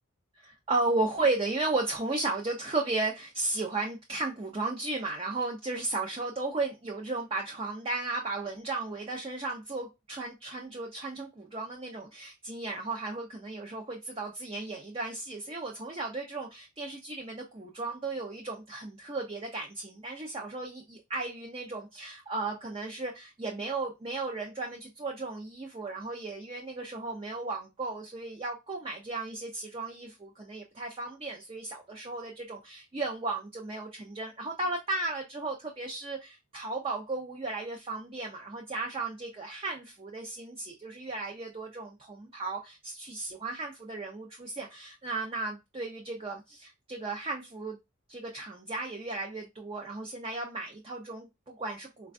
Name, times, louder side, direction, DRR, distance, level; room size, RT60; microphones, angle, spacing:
voice 1, 0.4-47.8 48.1-52.1, right 3 dB, 25° right, 0.5 m, -35 dB
4.2 x 2.2 x 2.4 m
head